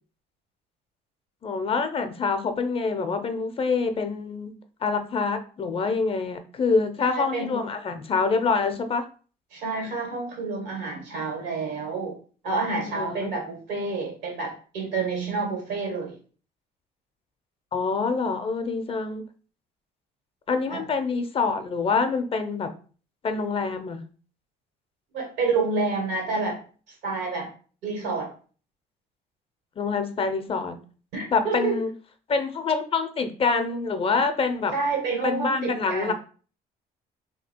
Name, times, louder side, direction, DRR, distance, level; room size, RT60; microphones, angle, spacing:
voice 1, 1.4-4.5 4.8-9.1 12.9-13.3 17.7-19.2 20.5-22.7 23.2-24.0 29.8-30.8 31.3-31.9 32.3-34.7 35.2-36.1, left 4 dB, 35° left, 8 dB, 0.5 m, -26 dB
voice 2, 7.0-7.6 9.5-12.2 12.4-16.2 20.7-20.8 25.1-26.6 27.0-27.5 27.8-28.3 31.1-31.8 34.7-36.1, right 4 dB, 90° right, 1 dB, 1.7 m, -29 dB
2.8 x 2.7 x 4.3 m, 0.40 s
cardioid pair, 110°, 17 cm